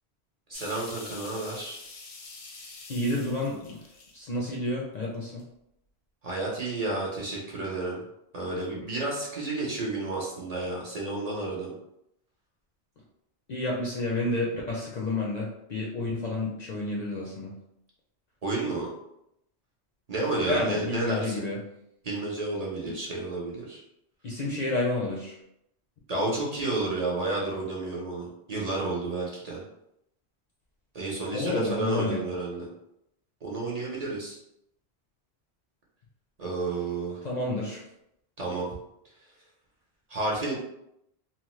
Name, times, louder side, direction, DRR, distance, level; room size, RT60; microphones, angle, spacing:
sound 1, 0.5-4.7 5.1-5.4, left 3 dB, 85° left, 0.9 m, -45 dB
voice 1, 0.5-1.9 6.2-8.0 8.3-11.7 18.4-18.9 20.1-21.5 22.0-23.8 26.1-29.6 30.9-32.6 33.4-34.4 36.4-37.3 38.4-38.8 40.1-40.5, right 2 dB, 45° right, -4 dB, 0.7 m, -31 dB
voice 2, 2.9-3.8 4.1-5.4 13.5-17.5 20.5-21.6 24.2-25.4 31.3-32.3 37.2-37.8, left 2 dB, 55° left, -3 dB, 0.5 m, -30 dB
2.8 x 2.0 x 3.0 m, 0.80 s
omnidirectional pair, 1.1 m